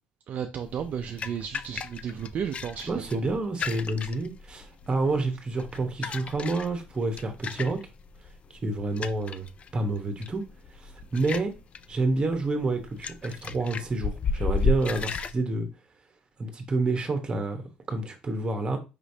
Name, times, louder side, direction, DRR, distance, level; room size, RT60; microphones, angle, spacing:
voice 1, 0.3-3.0, right 8 dB, 50° right, 0.4 m, -33 dB
sound 1, 0.6-15.3, left 4 dB, 35° left, 0.3 m, -34 dB
voice 2, 2.9-7.8 8.6-9.5 9.7-10.4 10.8-11.5 11.9-15.7 16.4-17.6 17.9-18.8, right 2 dB, 25° right, 1.1 m, -28 dB
5.1 x 3.1 x 2.7 m
cardioid pair, 105°, 3 cm